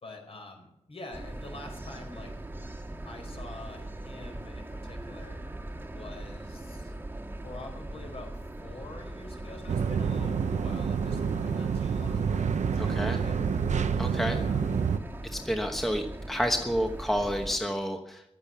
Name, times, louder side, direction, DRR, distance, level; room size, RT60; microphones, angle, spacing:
voice 1, 0.0-2.4 3.0-5.4 5.9-6.9 7.4-12.5 12.8-13.4 14.3-14.6, left 2 dB, 55° left, 3 dB, 4.7 m, -46 dB
sound 1, 1.1-17.6, right 1 dB, 15° right, 1.7 m, -40 dB
sound 2, 9.7-15.0, right 6 dB, 85° right, 0.9 m, -28 dB
voice 2, 12.8-13.2 14.0-14.4 15.3-18.2, equal, ahead, 4 dB, 1.1 m, -29 dB
15.0 x 12.0 x 7.0 m, 0.82 s
wide cardioid pair, 155°, 12 cm